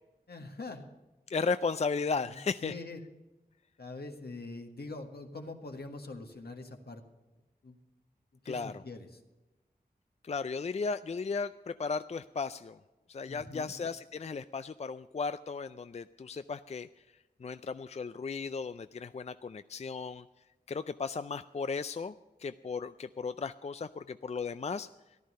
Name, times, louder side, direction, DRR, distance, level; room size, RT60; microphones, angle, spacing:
voice 1, 0.3-0.9 2.2-3.0 3.8-7.0 7.6-7.8 8.4-9.2 13.2-13.8, left 3 dB, 75° left, 3 dB, 1.5 m, -44 dB
voice 2, 1.3-2.7 8.5-8.7 10.2-12.8 13.1-16.9 17.4-20.2 20.7-22.1 22.4-24.9, left 4 dB, 40° left, 12 dB, 0.4 m, -35 dB
14.0 x 11.5 x 5.4 m, 1.1 s
wide cardioid pair, 45°, 17 cm